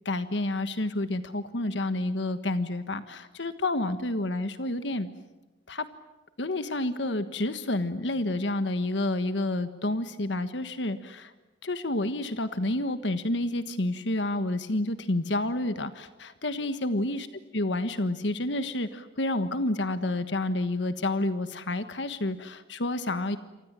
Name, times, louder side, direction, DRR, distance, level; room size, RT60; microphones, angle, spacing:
voice 1, 0.1-5.1 5.7-5.9 6.4-11.3 11.6-17.3 17.5-23.4, left 2 dB, 85° left, 11 dB, 1.4 m, -29 dB
28.5 x 25.5 x 7.5 m, 1.1 s
head